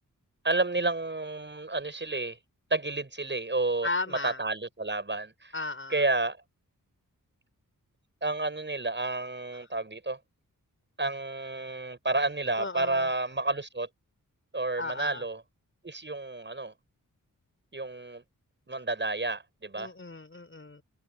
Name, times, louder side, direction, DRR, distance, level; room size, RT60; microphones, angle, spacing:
voice 1, 0.4-2.4 2.7-5.5 5.9-6.4 8.2-10.2 11.0-13.9 14.5-15.4 15.8-16.7 17.7-18.2 18.7-19.9, right 2 dB, 35° right, 7.3 m, -30 dB
voice 2, 3.8-4.4 5.5-6.0 12.6-13.1 14.8-15.2 19.7-20.8, left 2 dB, 40° left, 6.3 m, -35 dB
wide cardioid pair, 85°, 33 cm